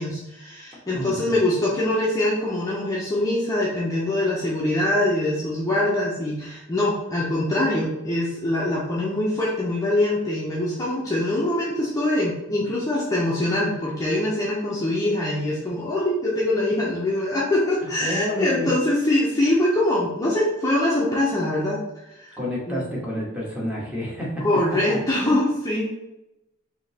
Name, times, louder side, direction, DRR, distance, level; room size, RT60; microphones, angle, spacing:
voice 1, 0.0-21.8 22.2-22.4 22.7-22.8 24.4-25.9, left 1 dB, 15° left, -6 dB, 0.7 m, -23 dB
voice 2, 0.9-1.3 18.0-18.7 22.4-24.5 24.9-25.0, left 1 dB, 5° right, -5 dB, 1.2 m, -29 dB
3.7 x 2.8 x 4.0 m, 0.92 s
head